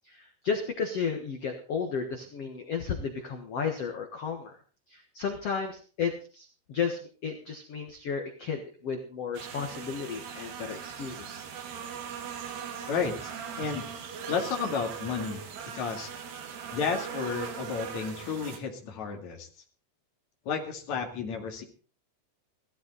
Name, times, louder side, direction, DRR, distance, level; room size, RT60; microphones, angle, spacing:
voice 1, 0.0-4.6 4.9-11.4, left 6 dB, 80° left, 4 dB, 1.3 m, -33 dB
sound 1, 9.3-18.6, right 7 dB, 65° right, 4.0 m, -40 dB
voice 2, 12.9-13.3 13.6-13.8 14.3-15.4 15.7-16.1 16.7-19.5 20.4-21.6, left 6 dB, 45° left, 3 dB, 3.1 m, -32 dB
16.5 x 14.5 x 4.1 m, 0.37 s
omnidirectional pair, 5.2 m